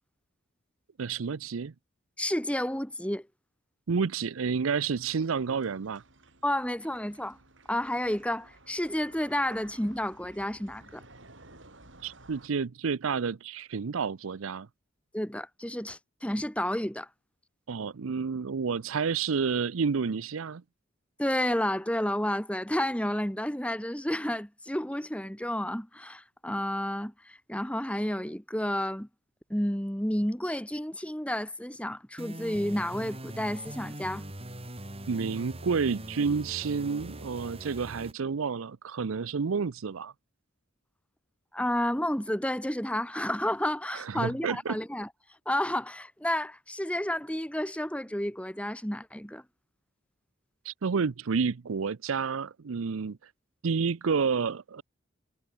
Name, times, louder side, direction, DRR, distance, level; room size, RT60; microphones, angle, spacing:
voice 1, 1.0-1.7 3.9-6.0 12.0-14.7 17.7-20.6 35.1-40.1 43.9-44.8 50.6-53.2 53.6-54.8, right 5 dB, 85° right, 0.6 m, -30 dB
voice 2, 2.2-3.2 6.4-7.4 7.7-11.0 15.1-17.1 21.2-29.1 29.5-34.2 41.5-45.1 45.5-49.4, left 1 dB, 5° left, 2.3 m, -31 dB
sound 1, 4.9-12.5, right 2 dB, 65° right, 5.8 m, -55 dB
sound 2, 32.2-38.1, right 1 dB, 30° right, 6.1 m, -42 dB
head